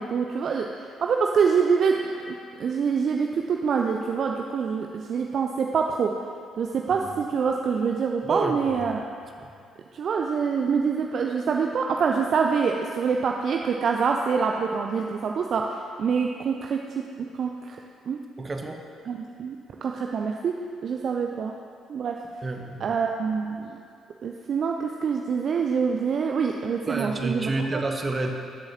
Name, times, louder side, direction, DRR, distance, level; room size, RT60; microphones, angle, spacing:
voice 1, 0.0-2.0 2.3-6.1 6.6-9.1 9.9-17.1 17.4-17.8 18.1-18.2 19.0-20.5 20.8-21.5 21.9-22.2 22.8-23.8 24.2-27.8, right 6 dB, 50° right, 2 dB, 0.4 m, -25 dB
voice 2, 8.2-8.8 9.4-9.5 18.4-18.8 22.4-22.9 26.9-28.3, right 2 dB, 30° right, 4 dB, 1.0 m, -29 dB
14.0 x 7.7 x 2.8 m, 2.3 s
figure-of-eight pair, 45°, 0 cm